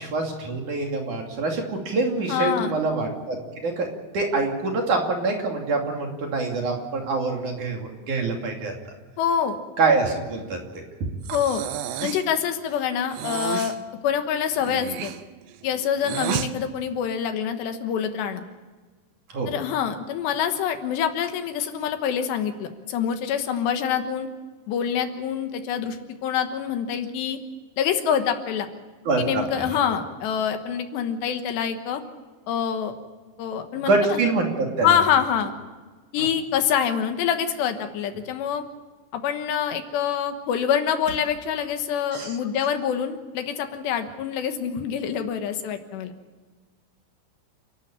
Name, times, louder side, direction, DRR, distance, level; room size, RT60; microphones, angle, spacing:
voice 1, 0.0-3.4 3.6-3.9 4.1-8.7 9.8-10.8 19.3-19.5 29.1-29.8 33.7-35.0 36.2-36.3 42.1-42.4, right 3 dB, 50° right, 1 dB, 3.7 m, -25 dB
voice 2, 2.3-2.7 9.2-9.6 11.3-11.6 12.0-13.7 14.0-15.1 15.6-18.5 19.5-24.3 24.7-27.4 27.8-28.7 29.2-32.0 32.5-32.9 33.4-34.2 34.8-35.5 36.1-38.6 39.1-46.1, left 8 dB, 75° left, 7 dB, 3.4 m, -26 dB
Breathing, 11.2-12.3 13.1-13.8 14.5-16.5, right 11 dB, 80° right, 3.2 m, -31 dB
29.5 x 12.0 x 8.8 m, 1.3 s
omnidirectional pair, 5.1 m